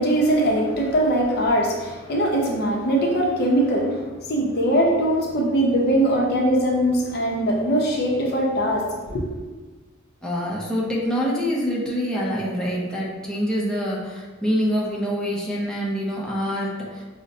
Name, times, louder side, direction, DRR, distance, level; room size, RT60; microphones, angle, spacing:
voice 1, 0.0-9.3, right 1 dB, 50° left, -1 dB, 0.6 m, -21 dB
voice 2, 10.2-17.0, equal, 5° left, -5 dB, 0.5 m, -25 dB
5.1 x 2.1 x 2.7 m, 1.3 s
head